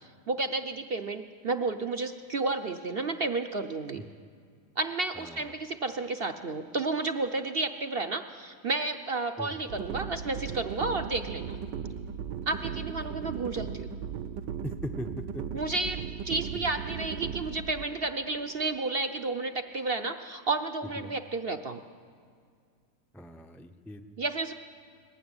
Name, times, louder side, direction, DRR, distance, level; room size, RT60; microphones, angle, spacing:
voice 1, 0.0-4.0 4.8-11.6 12.5-13.9 15.5-16.0 16.2-21.8 24.2-24.5, right 3 dB, 50° right, 8 dB, 0.7 m, -31 dB
voice 2, 5.1-5.5 9.4-9.6 12.5-13.1 14.6-15.4 16.5-16.7 21.0-21.1 23.1-24.0, equal, ahead, 6 dB, 0.4 m, -41 dB
sound 1, 9.7-19.8, right 7 dB, 70° right, 1.4 m, -37 dB
29.5 x 20.0 x 9.6 m, 2.2 s
omnidirectional pair, 2.0 m